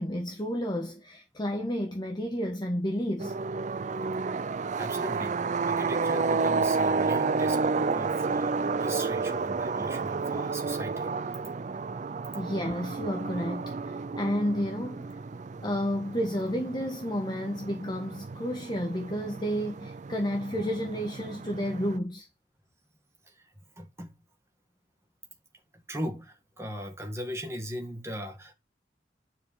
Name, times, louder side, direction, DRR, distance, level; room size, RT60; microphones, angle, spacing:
voice 1, 0.0-3.4 10.3-10.4 12.3-15.1 15.6-22.2, equal, 25° left, 1.2 m, -31 dB
sound 1, 3.2-22.0, right 4 dB, 40° right, 0.4 m, -31 dB
voice 2, 4.8-11.1 23.3-24.1 25.7-28.5, equal, 15° right, 1.9 m, -39 dB
9.9 x 5.1 x 4.7 m
head